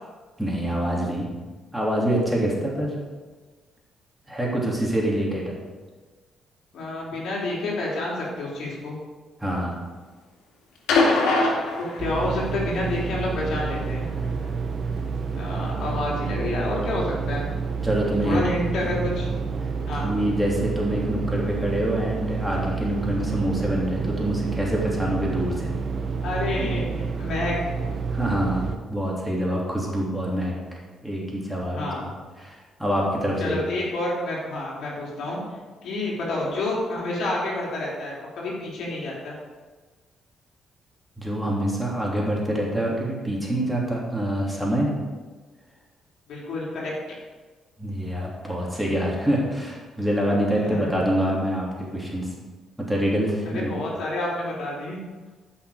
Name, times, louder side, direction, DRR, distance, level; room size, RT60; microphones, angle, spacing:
voice 1, 0.4-1.3 1.7-2.9 4.3-5.5 9.4-9.8 17.8-18.4 18.8-19.0 20.0-25.7 28.1-32.1 32.4-33.6 41.2-44.9 47.8-52.3 52.8-53.7, right 1 dB, 5° right, -4 dB, 3.1 m, -26 dB
voice 2, 6.7-9.0 11.8-14.1 15.3-17.5 18.2-19.3 19.9-20.1 26.2-27.5 31.7-32.1 33.4-35.4 35.8-39.4 46.3-46.9 50.6-50.9 53.5-55.0, left 2 dB, 75° left, -4 dB, 3.3 m, -29 dB
sound 1, 10.9-12.5 13.8-13.9, left 3 dB, 90° left, 2.4 m, -22 dB
sound 2, 12.0-28.8, right 5 dB, 50° right, 1.1 m, -29 dB
13.5 x 6.0 x 5.1 m, 1.3 s
cardioid pair, 90°, 0 cm